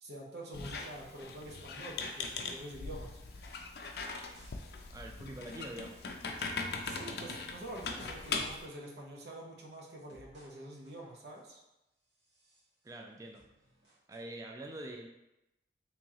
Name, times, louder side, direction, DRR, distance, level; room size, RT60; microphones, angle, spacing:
voice 1, 0.0-3.2 6.8-11.6, right 1 dB, 70° right, -1 dB, 0.7 m, -46 dB
Squeak, 0.5-8.7, left 4 dB, 60° left, 0.4 m, -40 dB
sound 1, 1.6-1.8 2.1-2.2 2.8-2.9 3.2-4.1 4.3-4.6 4.8-4.9 5.3-5.4 5.8-7.8 8.1-8.5 8.8-8.9 9.3-10.6 10.8-11.5 12.1-13.0 13.3-14.2, right 1 dB, 85° right, 1.1 m, -63 dB
voice 2, 4.9-6.1 12.8-13.4 14.1-15.1, right 1 dB, 20° right, 1 dB, 0.4 m, -45 dB
3.0 x 3.0 x 3.6 m, 0.90 s
head